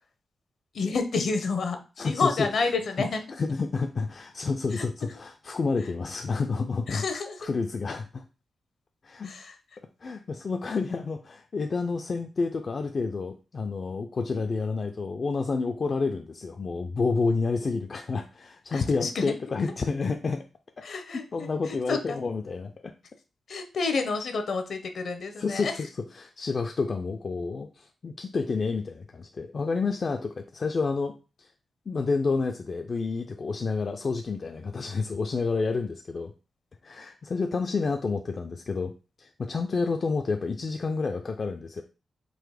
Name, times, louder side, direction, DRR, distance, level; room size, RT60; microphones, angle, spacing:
voice 1, 0.7-3.2 4.8-4.9 6.9-7.4 9.2-9.4 18.7-19.3 20.8-21.2 21.7-22.2 23.5-25.7, left 4 dB, 65° left, 6 dB, 0.8 m, -29 dB
voice 2, 2.0-2.7 3.0-7.0 7.4-8.2 9.0-9.4 10.0-20.5 21.3-22.9 25.4-31.5 31.9-36.3 36.8-41.8, left 4 dB, 45° left, 5 dB, 0.3 m, -29 dB
3.9 x 2.7 x 4.8 m, 0.32 s
wide cardioid pair, 125°, 0 cm